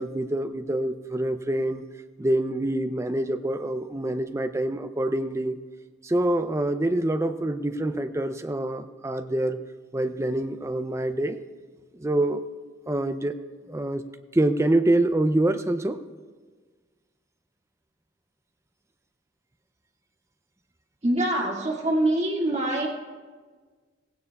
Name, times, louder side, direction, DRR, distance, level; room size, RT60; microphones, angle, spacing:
voice 1, 0.0-1.9 2.2-5.6 6.0-9.6 9.9-11.4 12.0-12.4 12.9-13.4 13.7-14.0 14.3-16.0, right 1 dB, 15° right, 9 dB, 0.4 m, -26 dB
voice 2, 21.0-22.9, right 1 dB, 35° right, -2 dB, 2.0 m, -24 dB
17.5 x 16.5 x 2.3 m, 1.5 s
head